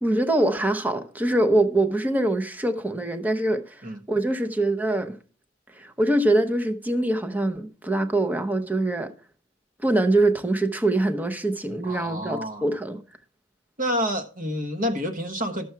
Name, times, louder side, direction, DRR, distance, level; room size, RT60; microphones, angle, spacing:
voice 1, 0.0-5.2 5.7-9.1 9.8-13.0, right 1 dB, 10° right, 0.7 m, -24 dB
voice 2, 11.8-12.7 13.8-15.7, equal, 40° right, 1.3 m, -28 dB
12.5 x 7.1 x 4.5 m
head